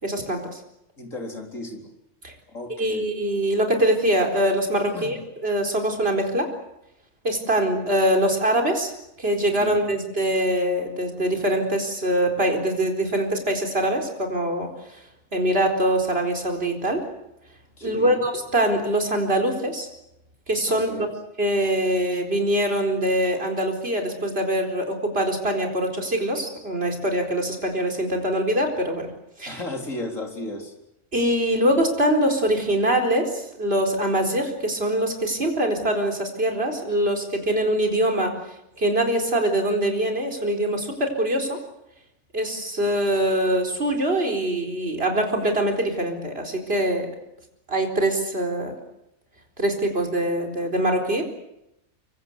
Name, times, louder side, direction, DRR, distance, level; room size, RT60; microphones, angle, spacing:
voice 1, 0.0-0.6 2.2-2.3 2.8-6.5 7.2-8.9 9.2-15.0 15.3-17.0 17.8-19.9 20.5-21.1 21.4-29.1 29.4-29.6 31.1-38.4 38.8-41.6 42.3-47.1 47.7-48.8 49.6-51.2, right 1 dB, 45° right, 3 dB, 4.5 m, -23 dB
voice 2, 1.0-1.9 2.5-3.1 4.9-5.2 9.6-9.9 17.8-18.2 20.7-21.1 29.4-30.7, left 2 dB, 65° left, 3 dB, 4.4 m, -35 dB
25.0 x 24.0 x 8.1 m, 0.84 s
omnidirectional pair, 1.4 m